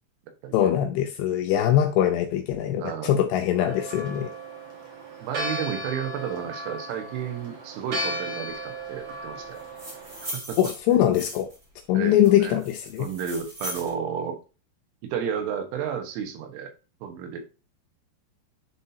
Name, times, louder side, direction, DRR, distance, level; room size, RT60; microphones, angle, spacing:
voice 1, 0.5-4.3 10.6-11.5 11.9-13.1, left 11 dB, 85° left, 5 dB, 2.4 m, -22 dB
voice 2, 2.8-3.3 5.2-9.6 10.2-10.6 12.0-12.6 13.0-14.4 15.0-16.7 17.0-17.4, right 7 dB, 85° right, 5 dB, 3.8 m, -32 dB
Church bell, 3.7-10.3, right 1 dB, 65° right, 1.5 m, -35 dB
sound 1, 9.5-11.6 12.2-13.9, equal, 35° right, 1.2 m, -39 dB
10.5 x 4.0 x 2.7 m, 0.32 s
omnidirectional pair, 5.6 m